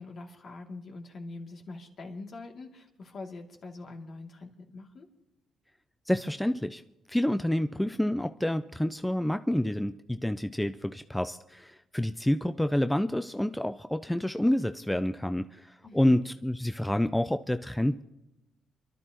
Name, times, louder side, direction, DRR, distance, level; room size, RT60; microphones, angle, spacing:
voice 1, 0.0-5.1 15.8-16.2, left 3 dB, 55° left, 1 dB, 2.5 m, -44 dB
voice 2, 6.1-6.8 7.1-18.0, left 1 dB, 5° left, 10 dB, 0.4 m, -28 dB
29.5 x 12.0 x 3.0 m, 0.95 s
cardioid pair, 90°, 0 cm